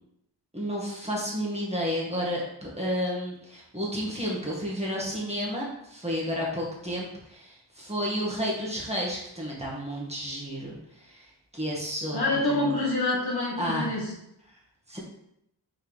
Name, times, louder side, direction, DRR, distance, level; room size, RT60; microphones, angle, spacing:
voice 1, 0.5-12.8 13.6-13.9 14.9-15.0, equal, 15° right, -4 dB, 1.9 m, -31 dB
voice 2, 12.1-14.1, left 2 dB, 60° left, -4 dB, 2.0 m, -26 dB
6.2 x 4.6 x 3.5 m, 0.78 s
wide cardioid pair, 85°, 43 cm